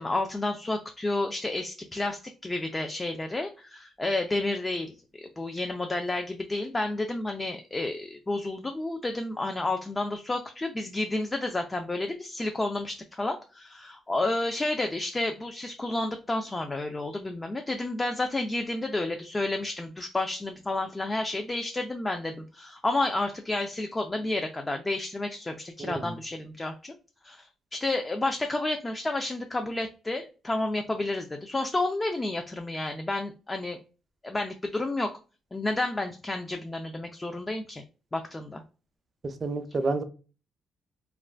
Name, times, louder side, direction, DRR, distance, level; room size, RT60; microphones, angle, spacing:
voice 1, 0.0-5.0 5.4-26.9 27.2-27.4 27.7-33.8 34.2-35.1 35.5-37.8 38.1-38.6, left 2 dB, 20° left, 5 dB, 0.4 m, -30 dB
voice 2, 25.8-26.1 39.2-40.0, right 3 dB, 40° right, 9 dB, 0.5 m, -30 dB
2.4 x 2.1 x 3.2 m, 0.35 s
cardioid pair, 90°, 0 cm